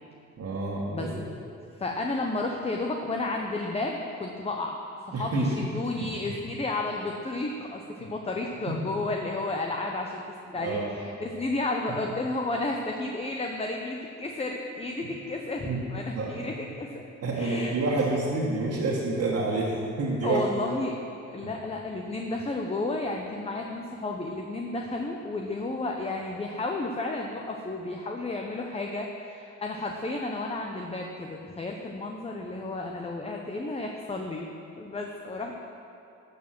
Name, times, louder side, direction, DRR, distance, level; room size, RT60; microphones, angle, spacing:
voice 1, 0.4-1.3 5.1-5.6 6.0-6.4 8.0-8.1 8.7-8.8 10.5-10.9 15.7-15.8 16.1-16.5 17.2-20.4 21.4-21.5, right 2 dB, 55° right, -6 dB, 1.9 m, -28 dB
voice 2, 1.8-4.8 5.1-17.0 17.3-18.1 20.2-21.0 21.3-35.5, left 2 dB, 20° left, 1 dB, 0.8 m, -32 dB
12.5 x 6.1 x 6.1 m, 2.7 s
cardioid pair, 90°, 30 cm